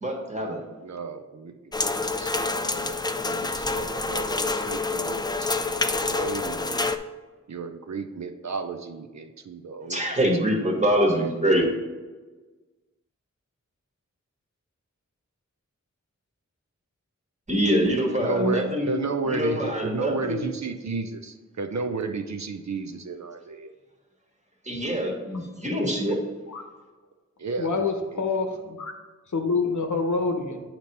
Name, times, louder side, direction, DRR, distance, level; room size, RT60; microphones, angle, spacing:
voice 1, 0.0-0.6 9.9-11.7 17.5-19.0 19.2-20.4 24.6-26.2, equal, 25° right, 0 dB, 1.5 m, -24 dB
voice 2, 0.8-6.9 7.5-10.3 10.6-10.8 11.1-11.3 18.2-23.7 27.4-27.9, right 4 dB, 65° right, 5 dB, 0.6 m, -33 dB
sound 1, 1.7-7.0, left 3 dB, 15° left, 0.4 m, -27 dB
voice 3, 27.6-28.9 29.3-30.6, left 4 dB, 75° left, 4 dB, 0.8 m, -26 dB
8.1 x 2.9 x 5.3 m, 1.3 s
wide cardioid pair, 45°, 30 cm